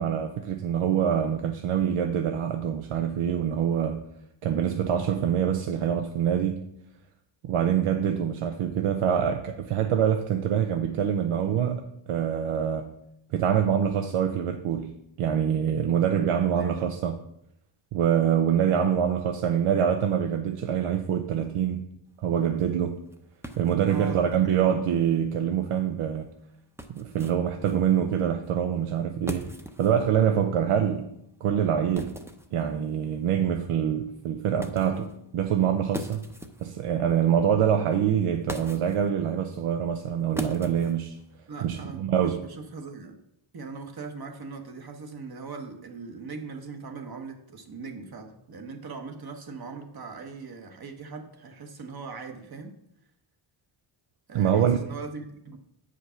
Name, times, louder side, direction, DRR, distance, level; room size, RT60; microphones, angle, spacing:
voice 1, 0.0-4.0 4.4-6.7 7.4-11.8 12.1-12.9 13.3-17.2 17.9-21.9 22.2-23.0 23.6-26.3 26.9-29.5 29.8-31.1 31.4-32.2 32.5-36.2 36.6-41.2 41.6-42.4 54.3-54.8, right 8 dB, 90° right, 0.7 m, -25 dB
voice 2, 16.4-16.9 23.9-24.6 41.5-43.2 43.5-52.7 54.3-55.6, right 4 dB, 50° right, 1.2 m, -40 dB
sound 1, 22.1-41.7, equal, 5° right, 0.6 m, -43 dB
8.0 x 5.1 x 5.6 m
wide cardioid pair, 130°, 49 cm